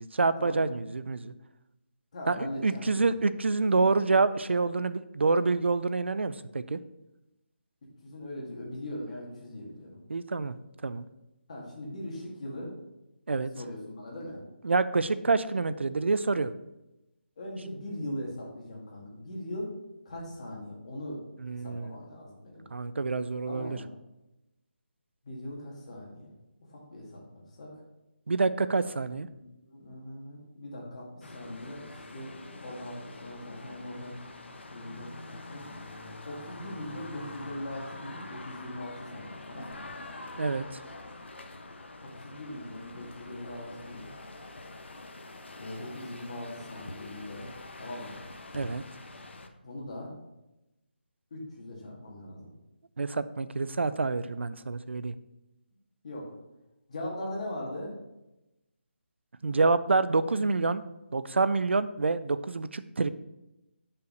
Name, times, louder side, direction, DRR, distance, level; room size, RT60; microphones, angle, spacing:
voice 1, 0.0-1.3 2.3-6.8 10.1-10.6 10.8-11.0 13.3-13.5 14.6-16.5 21.4-22.0 22.7-23.8 28.3-29.3 40.4-40.8 48.5-48.8 53.0-55.1 59.4-60.8 61.1-63.1, right 3 dB, 85° right, 14 dB, 0.5 m, -27 dB
voice 2, 2.1-3.2 8.0-10.0 11.5-12.7 13.6-14.4 17.4-19.7 20.1-21.2 21.4-22.6 23.5-23.9 25.2-26.3 26.7-27.8 29.3-32.3 32.6-34.2 34.7-35.7 36.3-39.9 42.0-44.1 45.6-47.5 47.7-48.2 49.6-50.1 51.3-52.5 56.0-56.3 56.9-57.9, left 1 dB, 35° left, -3 dB, 2.1 m, -40 dB
sound 1, 31.2-49.5, left 2 dB, 80° left, 0.9 m, -45 dB
6.5 x 5.6 x 3.9 m, 0.95 s
hypercardioid pair, 170°, 6 cm